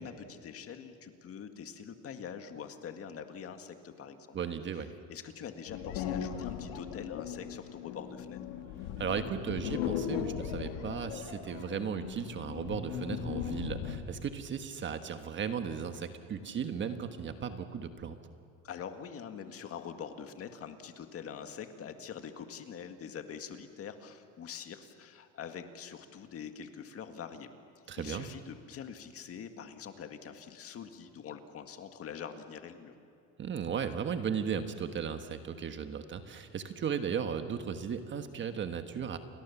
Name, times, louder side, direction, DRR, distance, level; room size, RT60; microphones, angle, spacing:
voice 1, 0.0-4.4 5.1-8.4 18.6-27.5 28.0-32.9, left 7 dB, 35° left, 7 dB, 1.9 m, -44 dB
voice 2, 4.3-4.9 9.0-18.2 27.9-28.3 33.4-39.2, right 7 dB, 30° right, 8 dB, 1.3 m, -36 dB
sound 1, 5.7-14.2, left 9 dB, 75° left, 2.7 m, -38 dB
29.5 x 22.5 x 7.2 m, 2.6 s
cardioid pair, 145°, 39 cm